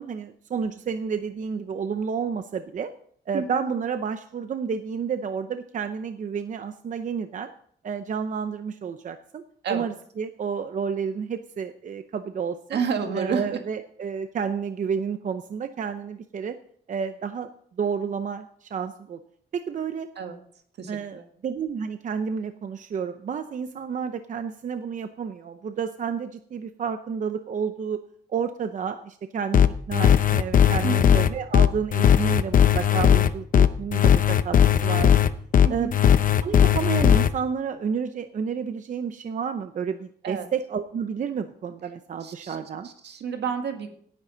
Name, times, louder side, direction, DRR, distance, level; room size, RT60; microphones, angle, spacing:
voice 1, 0.0-2.9 3.3-7.5 7.8-9.4 9.7-12.8 13.1-16.6 16.9-17.5 17.8-19.2 19.5-20.1 20.9-28.0 28.3-35.1 35.7-35.9 36.4-42.9, right 6 dB, 45° right, 9 dB, 0.7 m, -30 dB
voice 2, 3.3-3.7 9.6-9.9 12.7-13.6 20.2-20.4 20.8-21.2 30.8-31.2 35.6-35.9 40.2-40.5 42.2-42.6 42.8-43.9, right 6 dB, 75° right, 5 dB, 1.9 m, -30 dB
sound 1, 29.5-37.3, left 9 dB, 50° left, 0.7 m, -18 dB
17.5 x 9.9 x 3.9 m, 0.62 s
wide cardioid pair, 160°, 18 cm